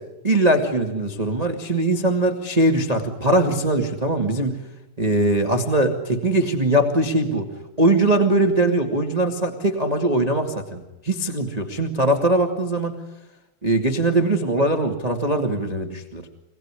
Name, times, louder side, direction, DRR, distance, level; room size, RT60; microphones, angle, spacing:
voice 1, 0.2-4.6 5.0-7.5 7.8-12.9 13.6-16.2, right 1 dB, 20° right, 4 dB, 1.0 m, -21 dB
26.5 x 19.5 x 9.9 m, 0.95 s
omnidirectional pair, 4.8 m